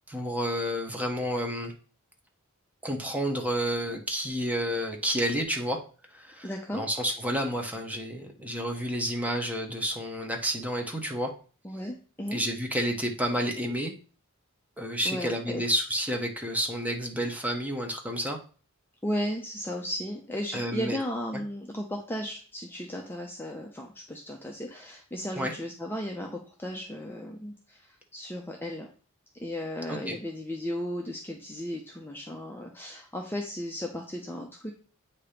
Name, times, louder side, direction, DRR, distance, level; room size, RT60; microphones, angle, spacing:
voice 1, 0.1-1.7 2.8-5.8 6.1-11.3 12.3-13.9 14.8-18.4 20.5-21.0 25.3-25.5 29.9-30.2, equal, 5° right, 2 dB, 1.0 m, -30 dB
voice 2, 6.4-6.8 11.6-12.4 15.0-15.6 19.0-28.9 29.3-34.7, equal, 10° left, 1 dB, 0.6 m, -35 dB
8.4 x 2.9 x 5.1 m, 0.39 s
head